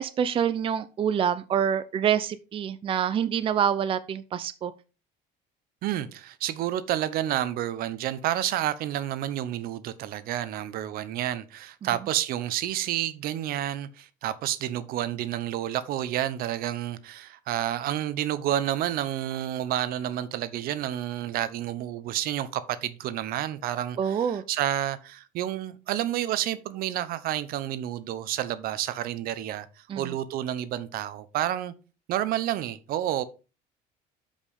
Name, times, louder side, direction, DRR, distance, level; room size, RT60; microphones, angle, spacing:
voice 1, 0.0-4.7 24.0-24.4 29.9-30.1, right 8 dB, 35° right, 0.5 m, -26 dB
voice 2, 5.8-29.7 30.0-31.7 32.1-33.2, right 12 dB, 65° right, 0.8 m, -30 dB
7.4 x 5.2 x 5.0 m
cardioid pair, 125°, 17 cm